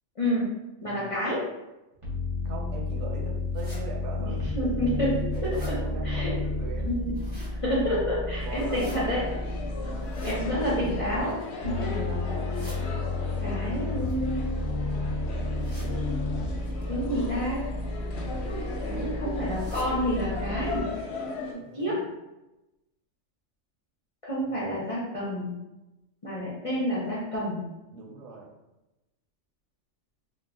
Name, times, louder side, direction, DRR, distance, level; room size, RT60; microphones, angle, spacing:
voice 1, 0.2-0.5 0.8-1.4 4.6-5.5 6.0-6.3 6.8-9.2 9.8-9.9 10.2-11.3 11.6-12.2 13.4-14.4 16.9-17.6 18.8-20.9 21.7-22.0 24.2-25.5 26.2-27.6, equal, 40° left, -8 dB, 0.5 m, -29 dB
voice 2, 0.8-1.2 2.4-4.4 5.2-6.9 7.8-9.4 10.7-11.0 13.2-13.8 16.9-17.2 18.4-19.3 21.4-22.0 24.4-25.0 27.9-28.5, right 3 dB, 70° right, -1 dB, 0.9 m, -42 dB
sound 1, 2.0-11.2 11.6-20.8, left 2 dB, 30° right, 0.7 m, -32 dB
sound 2, 3.5-3.8 4.5-4.6 5.0-5.7 6.9-7.6 8.5-9.0 10.0-10.4 11.1-11.6 12.3-12.8 13.9-14.9 15.6-15.9 16.6-16.8 17.8-18.1 18.5-18.6 18.8-18.9 19.5-19.9 20.3-20.4 20.7-20.8 21.4-21.5 21.8-21.9, equal, 10° left, 1.0 m, -47 dB
sound 3, 8.4-21.5, left 2 dB, 65° left, 0.8 m, -37 dB
2.3 x 2.0 x 3.5 m, 0.99 s
omnidirectional pair, 1.3 m